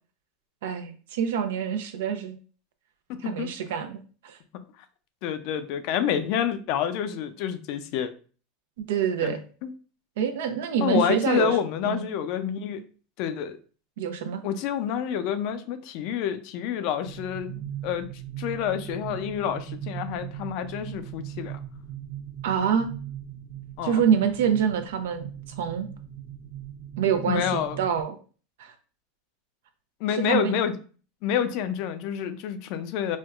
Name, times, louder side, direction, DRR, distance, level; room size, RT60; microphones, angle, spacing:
voice 1, 0.6-2.4 3.2-4.4 8.8-9.4 10.2-11.6 11.8-12.0 14.0-14.4 22.4-22.9 23.8-25.3 25.6-25.9 27.0-28.2 28.6-28.7 30.1-30.6, right 8 dB, 80° right, 7 dB, 0.5 m, -26 dB
voice 2, 3.1-3.5 5.2-8.1 9.2-9.7 10.8-12.8 13.2-13.6 14.4-18.1 18.4-21.6 23.8-24.0 27.3-27.8 30.0-30.7 31.2-33.2, left 9 dB, 60° left, 10 dB, 0.4 m, -28 dB
sound 1, 17.0-28.0, right 11 dB, 35° right, 0.6 m, -39 dB
4.3 x 2.2 x 2.4 m, 0.39 s
supercardioid pair, 120°, 0 cm